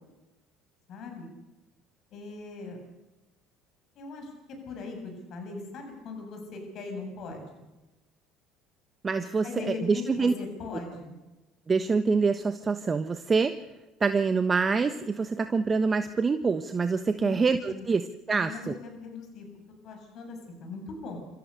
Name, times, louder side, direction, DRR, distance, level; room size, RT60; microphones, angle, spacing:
voice 1, 0.9-1.3 2.1-2.8 4.0-7.6 9.4-11.1 17.2-17.4 17.7-17.9 18.3-19.5 19.8-21.2, left 4 dB, 55° left, 4 dB, 7.5 m, -40 dB
voice 2, 9.0-10.3 11.7-13.5 14.0-18.7, right 4 dB, 30° right, 9 dB, 1.2 m, -26 dB
27.5 x 14.5 x 6.8 m, 1.0 s
hypercardioid pair, 75°, 0 cm